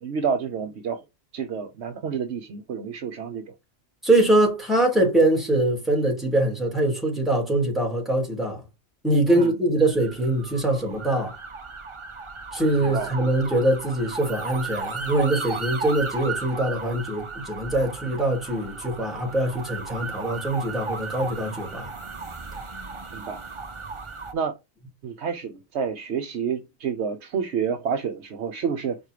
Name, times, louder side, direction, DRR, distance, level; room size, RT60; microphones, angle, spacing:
voice 1, 0.0-1.0 1.3-3.5 9.3-9.6 12.8-13.1 23.1-23.4 24.3-24.6 25.0-29.0, right 6 dB, 65° right, 1.0 m, -29 dB
voice 2, 4.0-8.6 9.0-11.3 12.5-21.9, right 1 dB, ahead, 3.2 m, -23 dB
sound 1, 9.8-24.3, right 4 dB, 30° right, 0.7 m, -35 dB
5.3 x 4.3 x 4.8 m
omnidirectional pair, 1.3 m